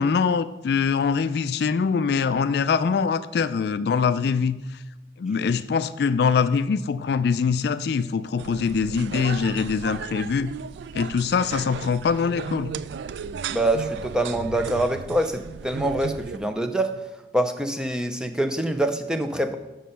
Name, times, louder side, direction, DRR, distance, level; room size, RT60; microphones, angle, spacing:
voice 1, 0.0-4.8 5.2-10.5 10.9-12.7, left 5 dB, 60° left, 14 dB, 0.3 m, -23 dB
sound 1, 8.4-16.4, right 6 dB, 70° right, 0.3 m, -35 dB
voice 2, 13.5-16.9 17.3-19.5, right 1 dB, 5° right, 7 dB, 0.5 m, -25 dB
7.2 x 6.4 x 5.6 m, 1.0 s
head